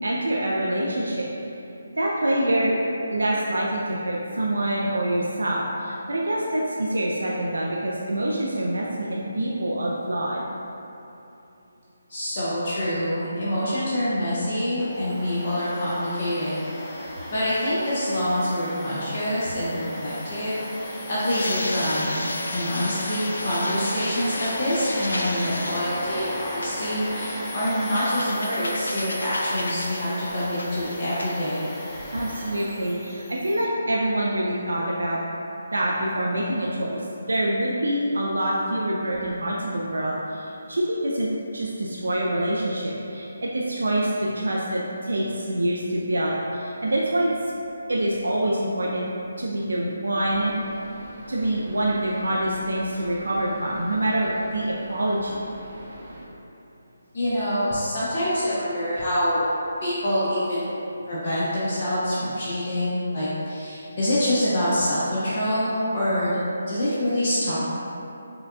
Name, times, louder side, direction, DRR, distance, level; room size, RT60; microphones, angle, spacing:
voice 1, 0.0-1.3 2.0-2.7 3.1-10.4 32.1-35.2 35.7-41.3 41.5-47.3 47.9-50.5 51.3-55.4, right 1 dB, 80° right, -4 dB, 0.4 m, -26 dB
voice 2, 12.1-16.6 17.3-31.7 57.1-59.4 59.8-60.8 61.1-67.6, equal, 45° left, -10 dB, 0.7 m, -26 dB
Domestic sounds home sounds, 14.8-33.7, left 1 dB, 10° left, 0.5 m, -36 dB
sound 1, 19.9-31.4, left 1 dB, 80° left, 0.4 m, -35 dB
sound 2, 50.1-56.2, right 1 dB, 40° right, 0.8 m, -44 dB
5.5 x 2.2 x 2.5 m, 2.9 s
figure-of-eight pair, 155°, 0 cm